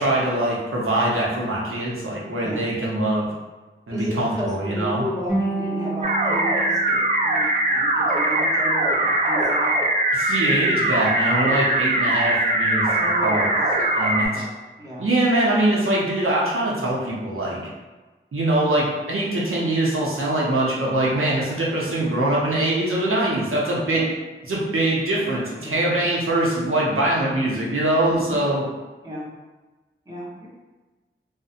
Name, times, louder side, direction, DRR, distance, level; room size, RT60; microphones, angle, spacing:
voice 1, 0.0-3.3 3.9-5.0 10.1-12.9 13.2-13.5 14.0-14.4 15.0-17.6 18.3-24.0 24.5-28.7, right 1 dB, 85° right, -4 dB, 0.7 m, -23 dB
voice 2, 2.3-2.7 3.9-9.7 13.0-14.5 14.8-15.1 23.9-24.0 25.6-25.9 28.0-28.5 29.0-29.3 30.0-30.5, equal, 20° right, -7 dB, 0.9 m, -33 dB
sound 1, 5.3-8.4, right 2 dB, 35° left, 0.7 m, -30 dB
sound 2, 6.0-14.3, right 1 dB, 35° right, 0.4 m, -21 dB
2.6 x 2.1 x 2.4 m, 1.2 s
wide cardioid pair, 65°, 21 cm